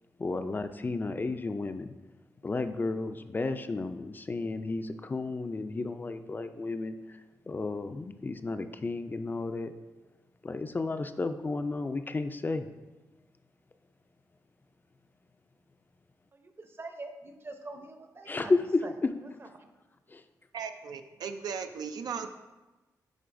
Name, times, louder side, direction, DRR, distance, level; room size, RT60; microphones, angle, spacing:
voice 1, 0.2-1.9 2.4-7.2 7.5-9.7 10.4-12.7 18.3-19.1 20.1-20.2, left 3 dB, 30° left, 9 dB, 0.4 m, -32 dB
voice 2, 16.3-18.5 18.8-18.9 19.4-19.7, right 2 dB, 35° right, 6 dB, 0.7 m, -44 dB
voice 3, 20.5-22.3, right 6 dB, 85° right, 7 dB, 0.4 m, -37 dB
10.0 x 3.8 x 2.6 m, 1.1 s
cardioid pair, 80°, 7 cm